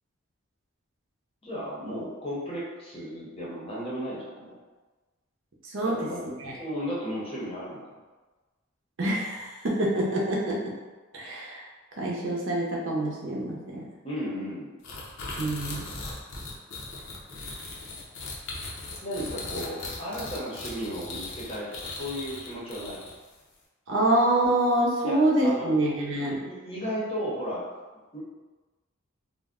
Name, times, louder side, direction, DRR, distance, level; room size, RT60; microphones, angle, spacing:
voice 1, 1.4-4.6 5.8-8.0 14.0-14.7 19.0-23.0 25.0-25.7 26.3-27.6 28.1-28.2, equal, 25° left, -6 dB, 0.7 m, -34 dB
voice 2, 5.6-6.1 6.4-6.6 9.0-10.7 11.1-11.7 12.0-13.9 15.4-15.8 23.9-26.4, right 1 dB, 65° right, -3 dB, 0.6 m, -26 dB
sound 1, 14.8-23.3, left 2 dB, 70° left, 0.6 m, -38 dB
2.5 x 2.1 x 3.5 m, 1.2 s
head